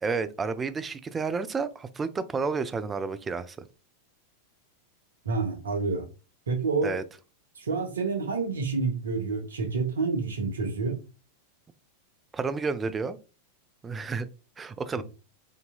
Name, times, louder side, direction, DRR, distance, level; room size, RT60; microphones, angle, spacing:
voice 1, 0.0-3.6 6.8-7.0 12.3-13.2 13.8-14.3 14.6-15.0, right 4 dB, 15° right, 0.3 m, -30 dB
voice 2, 5.2-6.1 6.5-7.0 7.6-11.0 15.0-15.1, right 4 dB, 70° right, 0.7 m, -28 dB
3.8 x 2.7 x 2.2 m
figure-of-eight pair, 90°, 0 cm